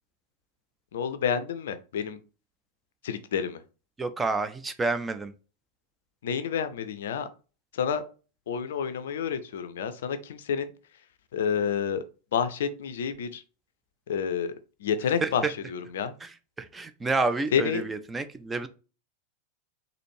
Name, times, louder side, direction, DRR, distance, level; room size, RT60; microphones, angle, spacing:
voice 1, 0.9-2.2 3.0-3.6 6.2-7.3 7.7-8.0 8.5-10.7 11.3-12.0 12.3-13.4 14.1-14.5 14.8-16.1 17.5-17.8, left 7 dB, 60° left, 0.4 m, -29 dB
voice 2, 4.0-5.3 15.2-15.3 16.2-16.3 16.6-18.7, right 3 dB, 15° right, 0.4 m, -29 dB
4.1 x 2.7 x 3.1 m
figure-of-eight pair, 90°, 0 cm